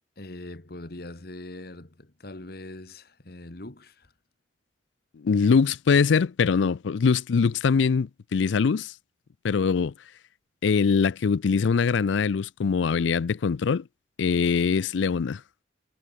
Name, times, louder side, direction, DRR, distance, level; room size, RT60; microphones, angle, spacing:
voice 1, 0.2-4.1, left 2 dB, 55° left, 1.6 m, -42 dB
voice 2, 5.2-8.9 9.4-9.9 10.6-13.8 14.2-15.4, left 5 dB, 85° left, 0.4 m, -23 dB
head